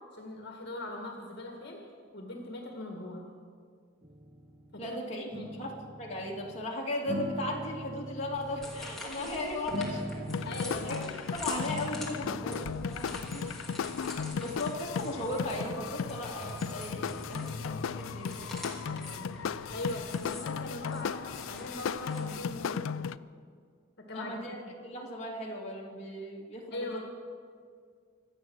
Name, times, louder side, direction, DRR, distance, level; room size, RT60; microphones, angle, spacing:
voice 1, 0.1-1.8 2.1-3.2 4.7-5.0 5.3-5.5 9.1-9.4 10.4-10.9 14.0-14.5 19.7-23.1 24.0-24.4 26.7-27.0, left 1 dB, 60° left, 1 dB, 1.9 m, -40 dB
sound 1, 4.0-4.9 5.3-6.7 7.0-9.1 9.7-11.1 11.6-15.6 16.3-22.8, right 1 dB, 25° right, 0.8 m, -44 dB
voice 2, 4.8-5.2 5.6-5.7 6.0-10.0 10.8-11.0 11.3-13.5 14.3-19.3 24.1-24.6 24.8-27.0, left 1 dB, 35° left, -3 dB, 2.5 m, -37 dB
sound 2, 8.3-22.4, left 1 dB, ahead, 2.8 m, -46 dB
sound 3, 10.3-23.2, left 6 dB, 85° left, 0.4 m, -36 dB
25.0 x 8.7 x 6.3 m, 2.1 s
head